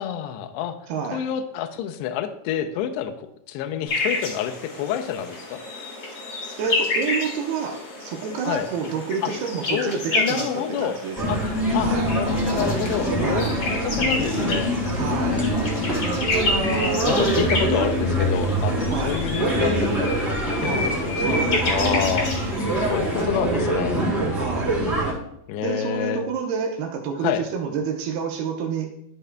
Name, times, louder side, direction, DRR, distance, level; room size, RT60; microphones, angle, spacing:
voice 1, 0.0-0.8 1.1-5.6 8.5-8.7 9.2-9.3 9.7-11.0 11.3-14.7 15.0-16.4 17.0-21.4 21.7-22.3 22.8-24.0 25.5-26.2 27.2-27.4, left 9 dB, 85° left, 6 dB, 2.5 m, -28 dB
voice 2, 0.9-1.3 6.6-11.5 11.8-12.1 13.2-13.6 15.0-15.4 18.9-19.2 20.6-22.2 24.4-24.8 25.6-28.9, right 6 dB, 75° right, 2 dB, 2.4 m, -29 dB
sound 1, 3.9-23.2, left 2 dB, 55° left, 1.5 m, -30 dB
sound 2, 11.2-25.1, right 1 dB, ahead, 2.2 m, -24 dB
13.0 x 6.7 x 2.2 m, 0.78 s
omnidirectional pair, 5.3 m